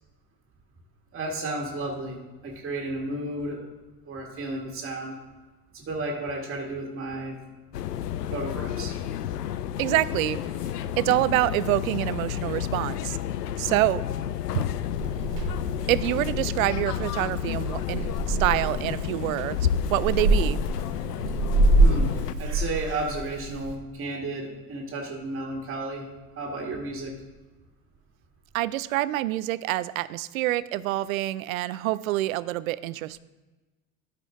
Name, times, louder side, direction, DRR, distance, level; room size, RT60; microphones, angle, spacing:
voice 1, 1.1-2.2 2.4-3.6 4.1-5.2 5.7-7.4 8.3-8.9 21.8-26.1 26.4-27.1, right 2 dB, 25° right, -1 dB, 1.7 m, -33 dB
sound 1, 7.7-22.4, left 10 dB, 75° left, 0.6 m, -31 dB
voice 2, 9.8-10.4 11.0-13.2 13.6-14.0 14.5-14.6 15.9-20.6 28.5-33.2, right 16 dB, 60° right, 18 dB, 0.5 m, -26 dB
Purr / Meow, 14.9-23.7, right 2 dB, 75° right, 1.2 m, -26 dB
13.0 x 5.0 x 3.6 m, 1.2 s
figure-of-eight pair, 70°, 48 cm